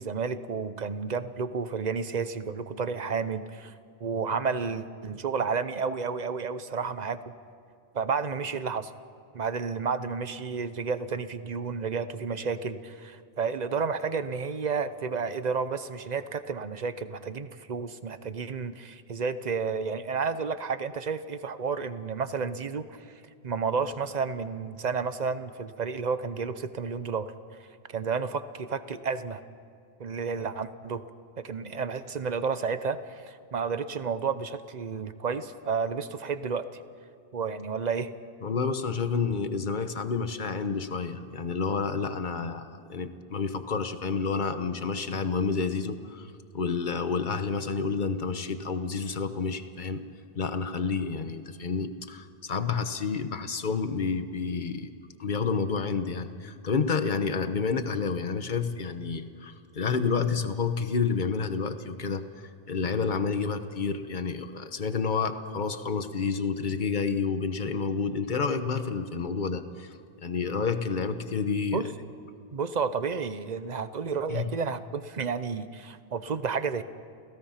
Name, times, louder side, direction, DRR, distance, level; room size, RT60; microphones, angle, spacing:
voice 1, 0.0-3.7 4.0-7.2 7.9-8.9 9.3-23.0 23.4-27.3 27.9-29.4 30.0-31.0 31.4-36.6 37.3-38.1 71.7-71.9 72.5-76.8, right 5 dB, 45° right, 12 dB, 0.9 m, -31 dB
voice 2, 38.4-50.0 50.3-54.9 55.2-71.9 74.3-74.5, left 5 dB, 50° left, 9 dB, 1.2 m, -29 dB
29.0 x 17.0 x 5.8 m, 2.4 s
omnidirectional pair, 1.1 m